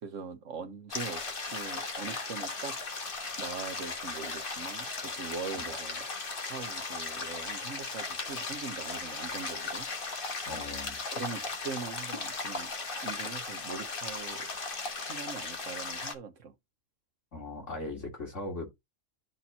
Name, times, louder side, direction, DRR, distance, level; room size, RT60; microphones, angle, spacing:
voice 1, 0.0-1.2 1.5-2.8 3.4-6.0 6.4-9.9 11.1-12.7 13.0-14.5 15.0-16.5, right 5 dB, 75° right, 1.5 m, -41 dB
sound 1, 0.9-16.1, left 3 dB, 45° left, 1.5 m, -37 dB
voice 2, 10.4-11.0 17.3-18.7, left 2 dB, 70° left, 3.2 m, -39 dB
12.5 x 4.3 x 2.8 m
omnidirectional pair, 1.3 m